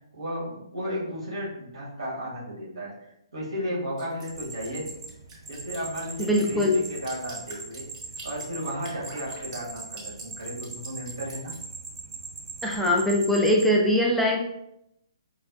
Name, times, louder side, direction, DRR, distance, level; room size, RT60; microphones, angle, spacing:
voice 1, 0.1-4.9 5.5-7.9 8.2-11.5, equal, 80° right, -4 dB, 1.3 m, -34 dB
Drip, 4.0-11.6, right 2 dB, 20° right, 1.0 m, -46 dB
sound 1, 4.3-13.7, right 4 dB, 55° right, 0.6 m, -41 dB
voice 2, 6.2-6.8 12.6-14.5, left 1 dB, ahead, -1 dB, 0.3 m, -22 dB
5.0 x 2.1 x 2.4 m, 0.79 s
figure-of-eight pair, 135°, 3 cm